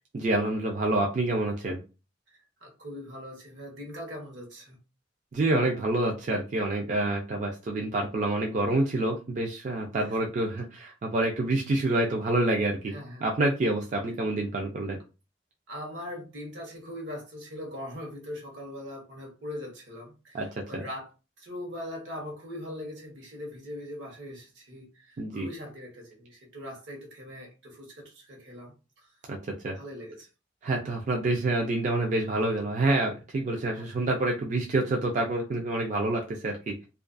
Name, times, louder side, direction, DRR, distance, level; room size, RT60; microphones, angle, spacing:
voice 1, 0.1-1.8 5.3-12.9 13.2-15.0 20.3-20.5 20.7-20.8 25.2-25.5 29.3-29.8 30.6-36.7, right 2 dB, 40° right, 0.3 m, -27 dB
voice 2, 2.3-4.8 10.0-10.3 12.9-13.2 15.7-21.1 21.4-29.1 29.7-30.3 33.7-33.9, left 1 dB, 75° right, 0.9 m, -41 dB
2.3 x 2.2 x 2.4 m
head